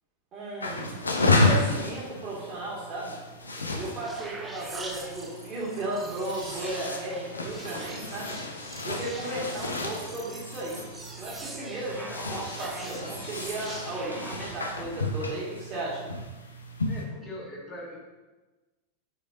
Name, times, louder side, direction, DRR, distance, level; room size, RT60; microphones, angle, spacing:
voice 1, 0.3-3.2 3.7-8.4 8.8-10.8 11.2-16.1, right 1 dB, 30° right, -7 dB, 2.3 m, -35 dB
sound 1, 0.6-17.0, left 2 dB, 75° left, 0.7 m, -32 dB
sound 2, 3.3-14.8, right 2 dB, 15° right, 0.9 m, -43 dB
voice 2, 16.9-18.0, left 1 dB, 25° left, -3 dB, 1.7 m, -41 dB
8.6 x 5.0 x 2.9 m, 1.2 s
figure-of-eight pair, 90°, 0 cm